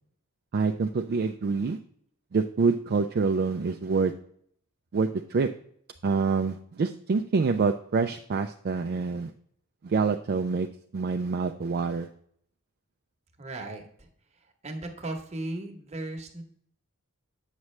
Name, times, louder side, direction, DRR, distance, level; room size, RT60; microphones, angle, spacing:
voice 1, 0.5-1.8 2.3-4.1 4.9-5.5 6.0-9.3 9.8-10.7 10.9-12.1, right 4 dB, 45° right, 6 dB, 0.4 m, -26 dB
voice 2, 13.4-14.1 14.6-16.4, right 2 dB, 30° right, 3 dB, 1.1 m, -36 dB
8.3 x 6.1 x 3.2 m, 0.63 s
head